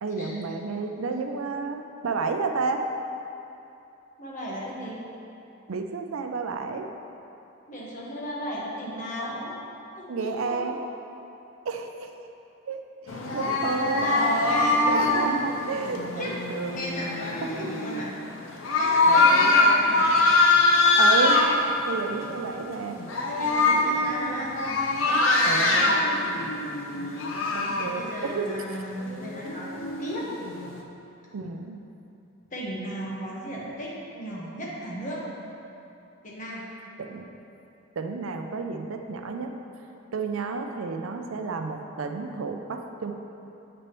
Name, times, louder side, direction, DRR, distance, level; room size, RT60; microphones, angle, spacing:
voice 1, 0.0-2.8 5.7-6.9 10.1-10.8 11.6-12.1 12.6-14.1 14.9-16.8 17.4-17.8 19.1-19.5 21.0-21.4 21.9-23.0 23.7-23.9 25.5-26.0 27.5-28.6 31.3-31.8 37.0-37.3 38.0-39.5 40.1-43.1, right 4 dB, 85° right, 5 dB, 0.5 m, -31 dB
voice 2, 4.2-5.0 7.7-9.5 10.0-10.7 13.7-14.9 16.2-16.3 16.7-18.1 18.5-20.1 23.1-24.5 25.0-26.5 27.1-27.3 27.6-30.3 32.5-35.2 36.2-36.6, equal, 40° left, -5 dB, 1.3 m, -35 dB
sound 1, 13.1-21.6 22.2-22.5 22.8-27.9 28.9-30.8, left 2 dB, 75° left, 0.7 m, -23 dB
8.0 x 6.1 x 3.1 m, 2.8 s
head